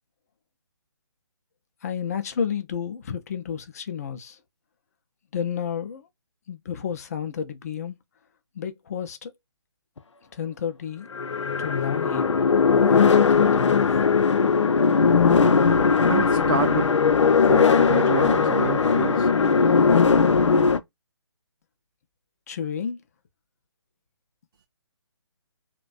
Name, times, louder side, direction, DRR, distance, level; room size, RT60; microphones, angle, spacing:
voice 1, 1.8-4.4 5.3-6.1 6.5-8.0 8.5-9.3 10.3-11.1 11.6-12.4 12.9-14.1 22.5-23.0, left 7 dB, 35° left, 0.4 m, -31 dB
sound 1, 10.0-10.1 11.1-20.8, left 5 dB, 90° left, 0.4 m, -19 dB
voice 2, 16.1-16.9 17.5-19.3, right 7 dB, 50° right, 0.4 m, -28 dB
2.5 x 2.1 x 2.3 m
figure-of-eight pair, 150°, 15 cm